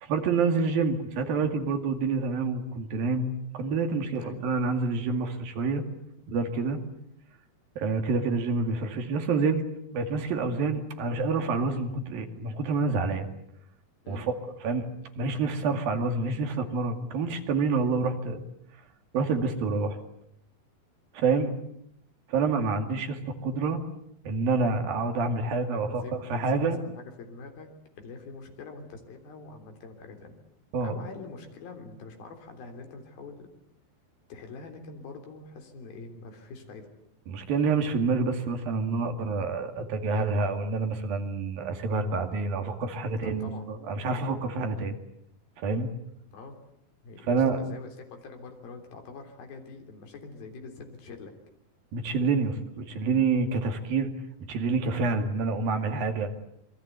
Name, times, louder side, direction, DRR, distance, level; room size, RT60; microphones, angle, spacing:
voice 1, 0.0-5.8 6.3-6.8 7.8-9.6 9.9-13.3 14.1-14.3 14.6-14.8 15.2-18.4 19.1-20.0 21.1-21.5 22.3-23.8 24.3-26.8 30.7-31.0 37.3-44.9 45.6-45.9 47.3-47.6 51.9-54.1 54.5-56.3, right 4 dB, 75° right, 6 dB, 4.1 m, -27 dB
voice 2, 25.7-27.7 28.0-30.4 30.8-33.5 34.3-36.9 43.1-43.7 44.0-44.3 46.3-46.5 47.0-51.3 55.0-55.3, left 4 dB, 75° left, 5 dB, 5.3 m, -44 dB
27.5 x 23.0 x 8.2 m, 0.74 s
omnidirectional pair, 4.2 m